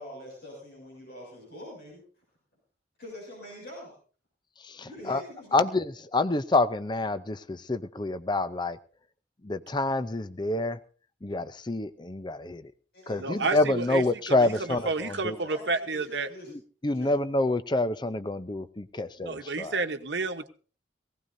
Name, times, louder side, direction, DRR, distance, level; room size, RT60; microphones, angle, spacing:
voice 1, 0.0-2.0 3.0-4.0 4.8-5.7 12.9-13.4 13.8-13.9 14.4-16.6 16.9-17.1, left 1 dB, 55° left, -2 dB, 6.7 m, -45 dB
voice 2, 4.6-5.2 5.5-8.8 9.4-10.8 11.2-12.7 13.1-15.4 16.8-19.8, left 2 dB, 25° left, 13 dB, 0.6 m, -27 dB
voice 3, 13.2-14.0 14.3-16.3 19.2-20.5, right 3 dB, 65° right, 7 dB, 1.1 m, -30 dB
19.5 x 17.0 x 2.7 m, 0.39 s
head